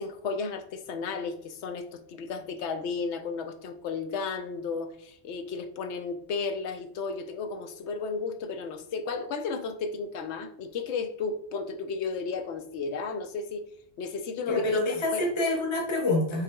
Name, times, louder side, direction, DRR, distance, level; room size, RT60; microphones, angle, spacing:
voice 1, 0.0-13.6 14.0-14.8 15.1-15.3, left 4 dB, 85° left, 8 dB, 0.9 m, -33 dB
voice 2, 14.5-16.4, left 2 dB, 30° left, -1 dB, 0.8 m, -26 dB
5.8 x 3.3 x 2.2 m, 0.69 s
omnidirectional pair, 1.1 m